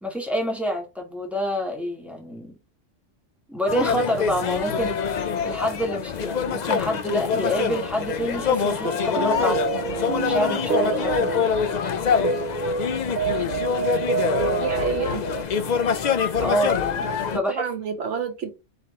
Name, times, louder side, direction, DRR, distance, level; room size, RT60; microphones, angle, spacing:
voice 1, 0.0-2.5 3.5-5.0 5.4-11.5 16.4-17.6, equal, ahead, 1.3 m, -27 dB
sound 1, 3.7-17.4, left 6 dB, 55° left, 0.5 m, -25 dB
sound 2, 7.2-15.4, right 5 dB, 50° right, 0.8 m, -28 dB
voice 2, 14.6-15.2 17.3-18.5, right 6 dB, 75° right, 1.3 m, -29 dB
5.1 x 2.9 x 3.0 m
omnidirectional pair, 1.2 m